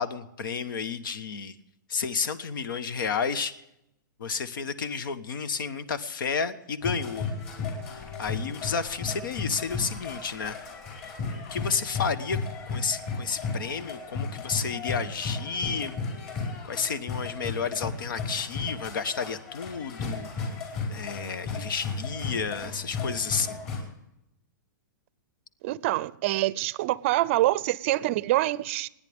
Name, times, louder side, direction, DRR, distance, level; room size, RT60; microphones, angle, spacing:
voice 1, 0.0-1.6 1.9-3.6 4.2-7.2 7.9-10.7 11.5-12.4 12.7-16.0 16.6-20.3 20.9-23.6, left 5 dB, 80° left, 1.3 m, -31 dB
sound 1, 6.8-23.8, left 4 dB, 40° left, 4.9 m, -34 dB
voice 2, 25.6-28.9, right 17 dB, 35° right, 0.5 m, -25 dB
29.0 x 10.0 x 3.6 m
hypercardioid pair, 160°, 11 cm